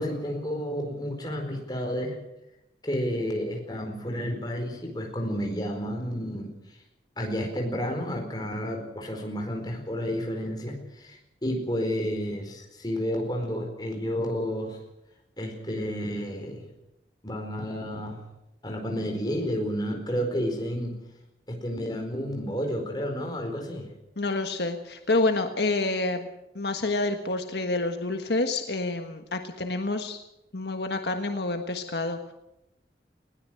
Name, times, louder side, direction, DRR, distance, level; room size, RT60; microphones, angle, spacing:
voice 1, 0.0-2.2 2.8-6.5 7.2-14.8 15.4-16.7 17.2-18.2 18.6-21.0 21.5-23.9, equal, 25° left, 2 dB, 4.5 m, -31 dB
voice 2, 24.2-26.3 26.5-30.2 30.5-32.3, left 2 dB, 70° left, 5 dB, 1.5 m, -28 dB
20.5 x 16.5 x 7.7 m, 0.90 s
head